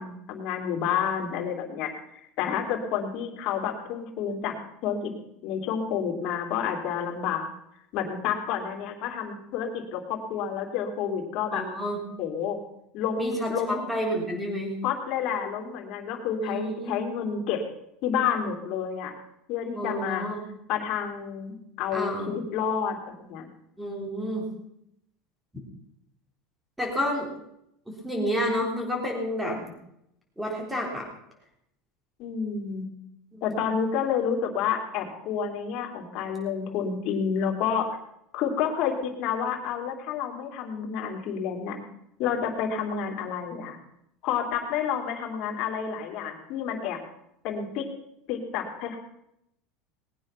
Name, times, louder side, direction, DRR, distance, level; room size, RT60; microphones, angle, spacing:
voice 1, 0.0-1.9 2.4-4.5 4.8-5.1 5.4-7.5 7.9-11.6 12.2-12.6 12.9-13.9 14.8-17.6 18.0-19.1 19.5-20.2 20.7-23.5 32.2-32.9 33.4-37.9 38.3-41.8 42.2-43.8 44.2-47.0 47.4-47.9 48.3-49.0, left 7 dB, 50° left, 2 dB, 3.1 m, -29 dB
voice 2, 11.5-12.0 13.2-14.8 16.4-17.0 19.7-20.4 21.9-22.3 23.8-24.5 26.8-27.3 27.9-29.7 30.4-31.1 33.3-33.6, equal, 5° right, 0 dB, 3.7 m, -30 dB
19.5 x 9.1 x 5.9 m, 0.78 s
supercardioid pair, 155°, 0 cm